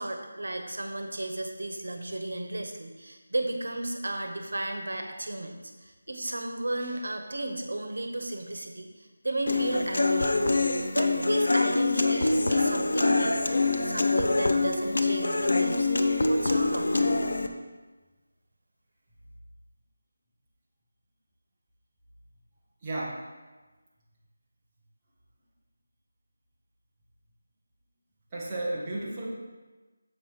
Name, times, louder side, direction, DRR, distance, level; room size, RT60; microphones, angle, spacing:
voice 1, 0.0-10.4 10.9-13.6 13.8-17.1, right 1 dB, 90° right, 5 dB, 1.1 m, -34 dB
Human voice / Acoustic guitar, 9.5-17.5, left 2 dB, 60° left, 0.6 m, -25 dB
voice 2, 22.8-23.2 28.3-29.3, right 1 dB, 10° right, -8 dB, 1.0 m, -33 dB
7.2 x 5.5 x 4.6 m, 1.2 s
figure-of-eight pair, 180°, 0 cm